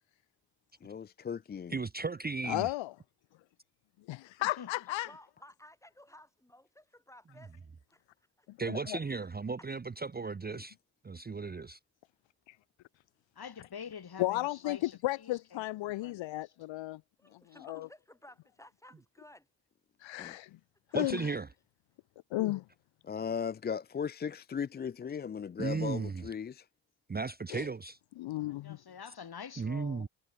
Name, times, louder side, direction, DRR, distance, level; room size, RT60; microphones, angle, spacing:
voice 1, 0.8-1.8 20.2-20.3 23.0-26.6, left 7 dB, 25° left, 0.4 m, -37 dB
voice 2, 1.7-2.7 8.6-10.7 11.0-11.8 20.9-21.5 25.6-26.3 27.1-28.0 29.6-30.1, right 4 dB, 20° right, 0.7 m, -35 dB
voice 3, 2.5-2.9 4.1-5.1 8.7-9.0 12.5-12.6 14.2-17.0 17.6-17.9 20.0-20.5 20.9-21.3 22.3-22.6 27.5-27.7 28.2-28.8, left 17 dB, 80° left, 0.8 m, -34 dB
voice 4, 4.4-5.2 13.4-16.4 28.6-30.1, left 7 dB, 55° left, 5.9 m, -47 dB
voice 5, 5.0-7.5 7.9-8.0 8.4-8.5 17.2-19.5 20.9-21.0, left 1 dB, 5° left, 5.1 m, -56 dB
supercardioid pair, 60°, 44 cm